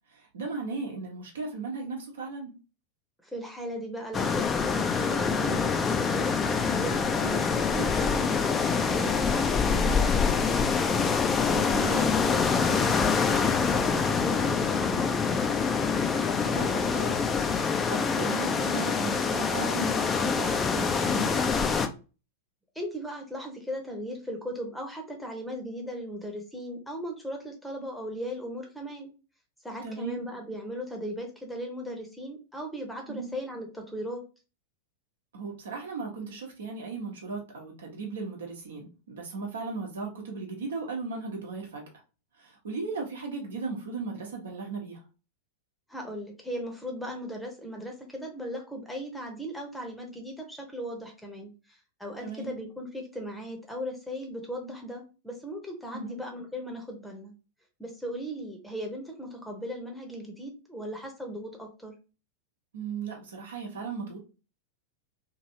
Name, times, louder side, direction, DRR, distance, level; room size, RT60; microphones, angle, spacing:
voice 1, 0.3-2.5 7.2-7.3 11.7-12.1 16.4-17.3 17.6-21.8 29.8-30.2 33.1-33.3 35.3-41.8 42.4-45.0 52.2-52.6 55.9-56.2 62.7-64.2, right 4 dB, 65° right, 0 dB, 1.0 m, -36 dB
voice 2, 3.2-11.0 11.5-15.1 22.7-29.1 29.6-34.2 45.9-57.3 57.8-61.9, equal, ahead, 2 dB, 0.8 m, -37 dB
sound 1, 4.1-21.9, left 5 dB, 20° left, 0.4 m, -25 dB
3.1 x 2.6 x 2.7 m, 0.32 s
figure-of-eight pair, 90°, 0 cm